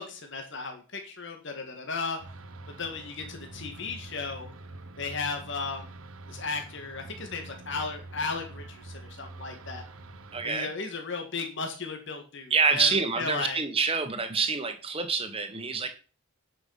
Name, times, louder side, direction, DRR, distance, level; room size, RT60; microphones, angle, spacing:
voice 1, 0.0-2.2 2.8-4.5 5.0-5.9 6.3-9.8 10.4-13.6 15.8-15.9, left 4 dB, 60° left, 4 dB, 2.0 m, -35 dB
sound 1, 2.2-10.5, right 2 dB, 85° right, 1.0 m, -45 dB
voice 2, 10.3-10.7 12.5-15.9, right 5 dB, 25° right, 7 dB, 1.4 m, -27 dB
10.0 x 6.0 x 5.8 m, 0.35 s
head